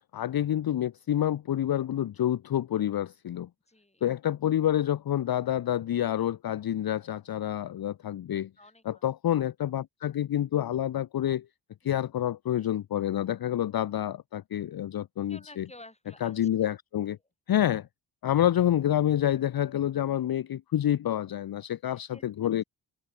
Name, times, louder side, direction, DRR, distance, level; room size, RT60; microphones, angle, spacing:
voice 1, 0.1-3.5 4.0-8.5 8.9-11.5 11.8-15.6 16.2-17.2 17.5-17.9 18.2-22.6, left 11 dB, 55° left, 0.6 m, -28 dB
voice 2, 3.7-4.0 8.6-9.0 11.8-12.0 15.3-16.5 21.9-22.5, left 1 dB, 15° left, 4.3 m, -52 dB
open air
cardioid pair, 60°, 44 cm